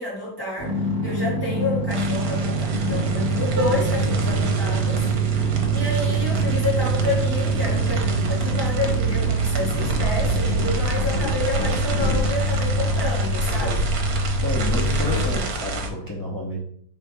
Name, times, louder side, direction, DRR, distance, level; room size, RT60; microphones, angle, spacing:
voice 1, 0.0-13.9 14.8-15.5, left 2 dB, 15° right, -5 dB, 1.3 m, -29 dB
sound 1, 0.6-15.3, right 3 dB, 40° right, 1.0 m, -24 dB
sound 2, 1.9-15.9, right 2 dB, 65° right, 1.2 m, -31 dB
sound 3, 2.7-12.3, left 2 dB, 80° left, 1.8 m, -33 dB
voice 2, 5.3-5.9 9.6-10.4 13.6-13.9 14.4-16.6, equal, 20° left, -5 dB, 0.6 m, -31 dB
4.0 x 2.7 x 4.7 m, 0.64 s
omnidirectional pair, 1.7 m